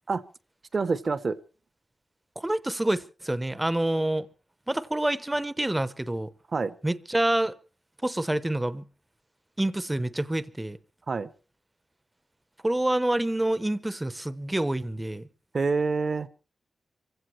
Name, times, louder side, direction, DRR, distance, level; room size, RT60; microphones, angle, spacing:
voice 1, 0.7-1.4 6.5-6.7 11.1-11.3 15.5-16.3, right 4 dB, 45° right, 0.8 m, -27 dB
voice 2, 2.4-4.3 4.7-6.3 6.8-7.6 8.0-8.9 9.6-10.8 12.6-15.3, right 1 dB, 10° right, 0.7 m, -27 dB
25.0 x 16.0 x 3.1 m
wide cardioid pair, 135°, 0 cm